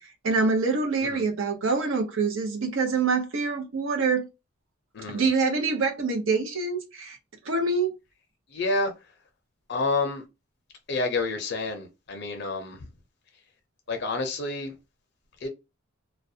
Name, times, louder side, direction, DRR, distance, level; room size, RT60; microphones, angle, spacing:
voice 1, 0.0-4.3 5.1-7.2 7.4-7.9, right 4 dB, 65° right, 0.7 m, -25 dB
voice 2, 8.5-8.9 9.7-10.2 10.9-12.8 13.9-14.7 15.4-15.5, left 3 dB, 50° left, 0.5 m, -28 dB
2.3 x 2.1 x 2.6 m
head